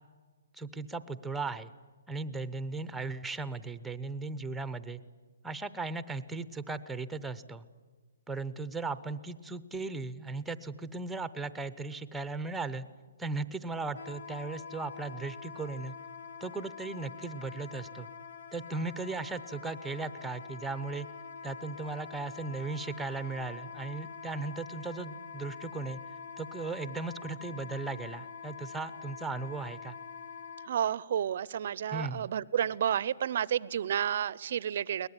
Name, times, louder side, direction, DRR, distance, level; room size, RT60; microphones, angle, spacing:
voice 1, 0.5-1.7 2.1-5.0 5.4-7.6 8.3-12.9 13.2-15.9 16.4-18.1 18.5-21.1 21.4-26.0 26.4-29.9 31.9-32.3, right 3 dB, 5° right, 13 dB, 0.8 m, -37 dB
Wind instrument woodwind instrument, 13.9-30.7, left 6 dB, 70° left, 1.1 m, -45 dB
voice 2, 30.7-35.1, right 9 dB, 50° right, 22 dB, 0.6 m, -31 dB
22.5 x 19.5 x 9.9 m, 1.5 s
hypercardioid pair, 155°, 0 cm